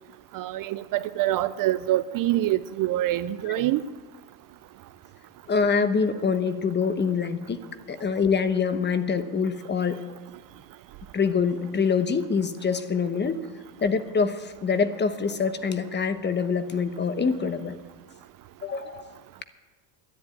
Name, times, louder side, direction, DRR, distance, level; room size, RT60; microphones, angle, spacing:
voice 1, 0.3-3.8, right 14 dB, 45° right, 14 dB, 0.5 m, -25 dB
voice 2, 5.5-7.6 7.9-10.0 11.1-13.4 13.8-17.8 18.6-19.1, left 5 dB, 20° left, 11 dB, 1.0 m, -25 dB
11.0 x 10.0 x 8.9 m, 1.3 s
supercardioid pair, 105°, 49 cm